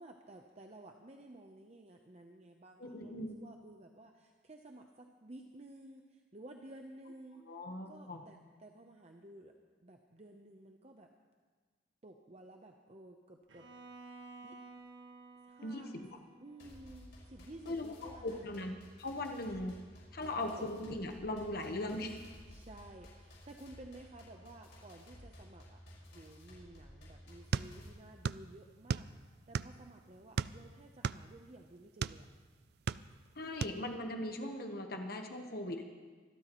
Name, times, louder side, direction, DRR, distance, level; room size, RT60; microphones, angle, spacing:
voice 1, 0.0-7.4 7.9-9.5 9.8-11.1 12.0-13.7 14.4-14.6 15.4-18.5 19.4-19.7 20.2-20.6 21.5-21.7 22.5-29.1 29.5-32.3, right 1 dB, 35° right, 3 dB, 0.7 m, -54 dB
voice 2, 2.8-3.4 7.5-8.2 15.6-16.1 17.7-18.7 19.0-19.8 20.1-22.2 33.3-35.8, left 1 dB, 55° left, 4 dB, 1.1 m, -39 dB
Bowed string instrument, 13.5-17.5, right 3 dB, 90° right, 1.4 m, -54 dB
sound 1, 16.6-27.9, equal, 75° left, 5.0 m, -55 dB
sound 2, 27.5-28.5 28.7-29.9 30.3-32.2 32.7-33.3 33.6-33.8, right 6 dB, 60° right, 0.3 m, -36 dB
25.0 x 13.0 x 3.1 m, 1.5 s
head